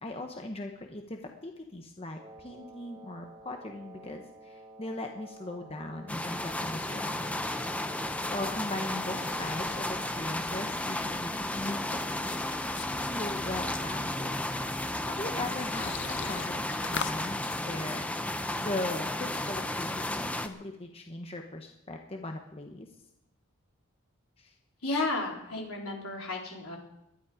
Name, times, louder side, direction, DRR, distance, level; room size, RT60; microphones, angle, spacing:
voice 1, 0.0-7.6 8.3-14.4 15.0-18.3 18.6-22.9 24.4-24.5, left 2 dB, 25° left, 3 dB, 1.1 m, -39 dB
Wind instrument woodwind instrument, 2.1-10.4, right 2 dB, 20° right, 1.6 m, -50 dB
sound 1, 6.1-20.5, left 1 dB, 5° left, 0.7 m, -33 dB
sound 2, 7.9-17.2, left 7 dB, 55° left, 0.7 m, -45 dB
voice 2, 24.8-26.8, left 2 dB, 75° left, -1 dB, 3.9 m, -33 dB
19.5 x 12.0 x 5.0 m, 0.85 s
head